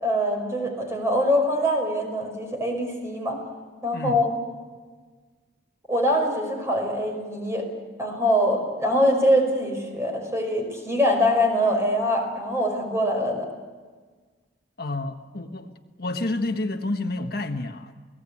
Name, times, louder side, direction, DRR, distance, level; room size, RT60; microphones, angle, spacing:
voice 1, 0.0-3.4 3.8-4.4 5.9-7.6 8.0-13.5, equal, 15° right, 3 dB, 5.4 m, -23 dB
voice 2, 14.8-15.7 16.0-17.9, left 2 dB, 60° left, 5 dB, 1.4 m, -29 dB
29.0 x 18.0 x 8.6 m, 1.4 s
head